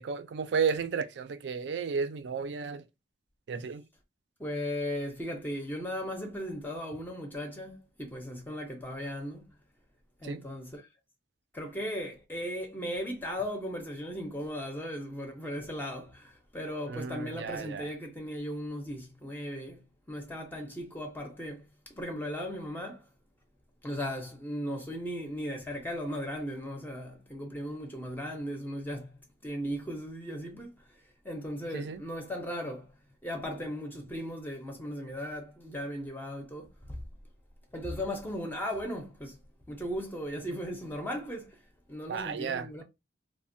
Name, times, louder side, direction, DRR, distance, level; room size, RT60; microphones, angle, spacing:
voice 1, 0.0-2.8 3.5-3.8 10.2-10.5 16.9-17.9 31.7-32.0 42.1-42.8, right 6 dB, 70° right, 0.4 m, -33 dB
voice 2, 4.4-9.5 10.2-10.9 11.5-23.0 23.8-29.1 29.4-33.0 33.2-37.0 37.7-39.4 39.7-41.6 41.9-42.8, equal, 10° left, 0.5 m, -37 dB
3.1 x 2.1 x 2.5 m
head